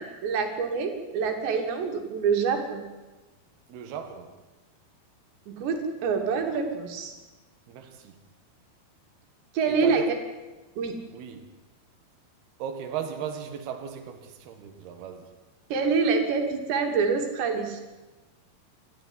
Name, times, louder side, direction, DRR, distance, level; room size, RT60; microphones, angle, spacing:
voice 1, 0.0-2.8 5.5-7.1 9.5-10.0 10.8-11.0 15.7-17.8, right 5 dB, 90° right, 5.0 m, -26 dB
voice 2, 3.7-4.4 7.7-8.2 9.7-10.2 11.1-11.4 12.6-15.4, right 8 dB, 70° right, 3.5 m, -36 dB
29.5 x 13.0 x 9.9 m
omnidirectional pair, 4.9 m